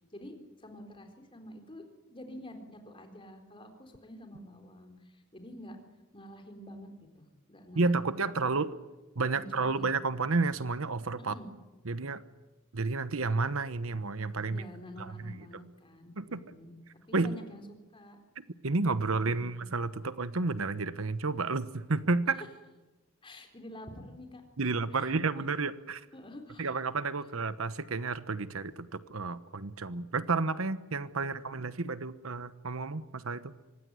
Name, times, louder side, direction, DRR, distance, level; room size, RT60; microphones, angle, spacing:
voice 1, 0.1-1.8 2.1-5.8 6.1-8.6 9.3-9.9 11.2-11.5 14.4-16.7 17.1-17.6 17.9-18.2 19.0-19.6 22.4-22.5 23.2-24.4 24.9-25.5 26.1-26.8 27.2-27.3 31.1-31.6, left 1 dB, 25° left, 5 dB, 4.0 m, -48 dB
voice 2, 7.7-8.7 9.2-11.3 11.9-12.2 12.7-14.6 15.0-15.3 16.2-16.4 17.1-17.3 18.6-22.4 24.6-26.0 26.6-33.5, right 3 dB, 75° right, 13 dB, 1.1 m, -31 dB
25.0 x 19.5 x 9.7 m, 1.1 s
head